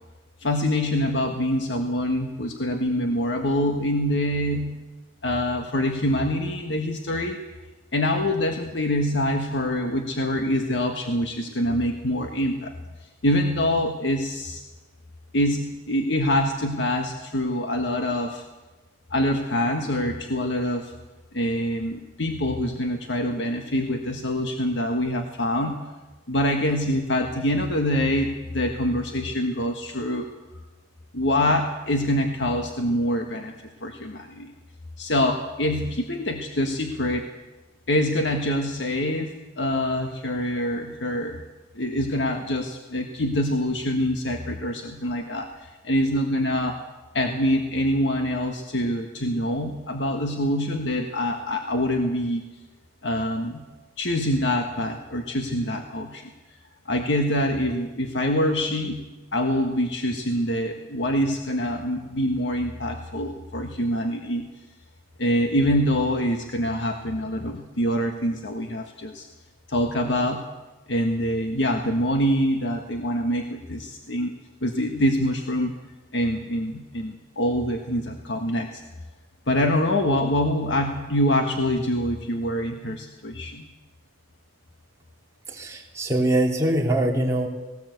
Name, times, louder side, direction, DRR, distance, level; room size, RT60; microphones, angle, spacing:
voice 1, 0.4-4.8 5.2-7.4 7.9-12.7 13.2-14.6 15.3-18.4 19.1-20.9 21.3-25.9 26.3-30.3 31.1-33.5 33.8-34.5 35.0-37.3 37.9-41.4 41.8-46.8 47.1-52.4 53.0-53.6 54.0-56.2 56.9-64.5 65.2-69.3 69.7-70.4 70.9-74.3 74.6-75.8 76.1-78.8 79.5-83.6, left 1 dB, 75° left, 4 dB, 1.6 m, -25 dB
voice 2, 85.5-87.5, right 1 dB, 15° right, -1 dB, 3.3 m, -23 dB
19.5 x 18.5 x 8.2 m, 1.2 s
head